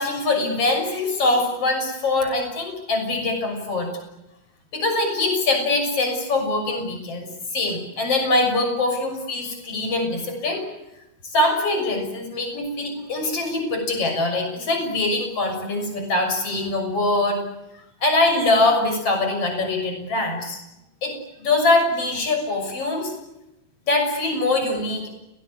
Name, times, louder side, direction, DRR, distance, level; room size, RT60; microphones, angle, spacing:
voice 1, 0.0-3.9 4.7-7.3 7.5-10.6 11.2-17.4 18.0-20.6 21.0-23.1 23.9-25.1, left 2 dB, 35° left, 5 dB, 7.4 m, -23 dB
30.0 x 19.5 x 9.7 m, 0.90 s
omnidirectional pair, 4.4 m